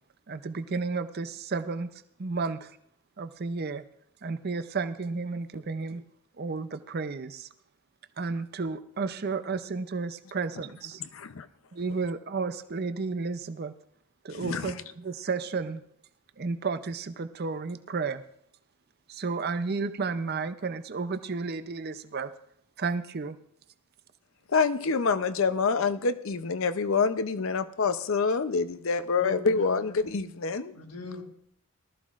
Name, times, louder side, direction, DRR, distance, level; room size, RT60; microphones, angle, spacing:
voice 1, 0.3-1.9 2.2-2.8 3.2-3.8 4.2-6.0 6.4-7.5 8.2-11.0 11.7-13.7 14.2-15.8 16.4-18.2 19.1-22.3 22.8-23.4, right 4 dB, 45° right, 12 dB, 0.5 m, -32 dB
voice 2, 11.0-11.5 14.3-14.7 24.5-30.7, left 4 dB, 65° left, 12 dB, 0.6 m, -27 dB
voice 3, 29.1-30.1 30.7-31.2, left 3 dB, 90° left, 3 dB, 1.6 m, -41 dB
19.0 x 13.5 x 2.5 m, 0.70 s
head